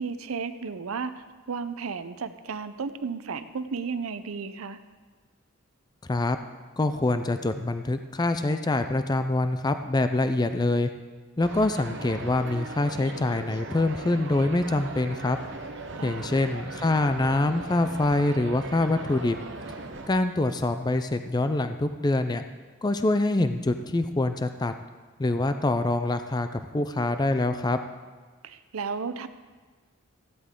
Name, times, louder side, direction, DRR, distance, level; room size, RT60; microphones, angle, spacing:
voice 1, 0.0-4.8 16.0-16.6 28.4-29.3, right 5 dB, 85° right, 11 dB, 0.6 m, -34 dB
voice 2, 6.8-10.9 11.4-15.4 16.0-19.4 20.1-22.4 22.8-24.7 25.2-27.8, left 2 dB, 20° left, 9 dB, 0.4 m, -25 dB
sound 1, 11.4-20.1, right 3 dB, 55° right, 1.0 m, -39 dB
15.0 x 11.5 x 3.7 m, 1.4 s
head